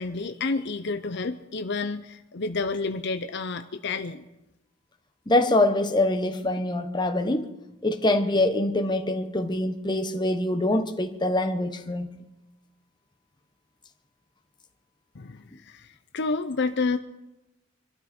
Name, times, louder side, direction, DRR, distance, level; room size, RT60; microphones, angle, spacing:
voice 1, 0.0-4.2 15.1-15.9 16.1-17.0, left 3 dB, 60° left, 0.7 m, -29 dB
voice 2, 5.3-7.5 7.8-12.1, left 1 dB, 20° left, 1.2 m, -24 dB
25.5 x 13.0 x 4.4 m
head